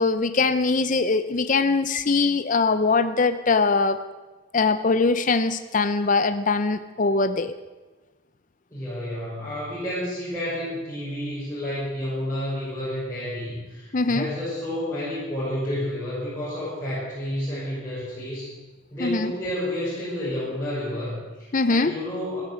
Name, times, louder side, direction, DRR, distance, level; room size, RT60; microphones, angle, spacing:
voice 1, 0.0-4.0 4.5-7.5 13.9-14.3 19.0-19.3 21.5-21.9, left 3 dB, 40° left, 11 dB, 0.6 m, -22 dB
voice 2, 8.7-18.5 18.9-22.4, left 1 dB, 15° left, -11 dB, 5.9 m, -30 dB
14.5 x 12.0 x 7.8 m, 1.2 s
head